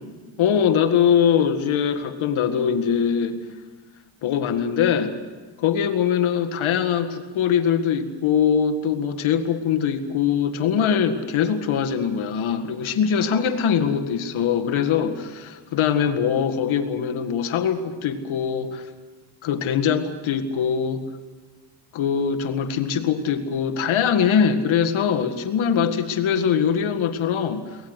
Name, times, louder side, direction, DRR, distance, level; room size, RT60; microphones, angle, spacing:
voice 1, 0.4-3.4 4.2-5.2 5.6-18.9 19.4-21.0 21.9-27.8, left 7 dB, 80° left, 7 dB, 1.9 m, -22 dB
23.0 x 18.5 x 8.2 m, 1.3 s
cardioid pair, 85°, 47 cm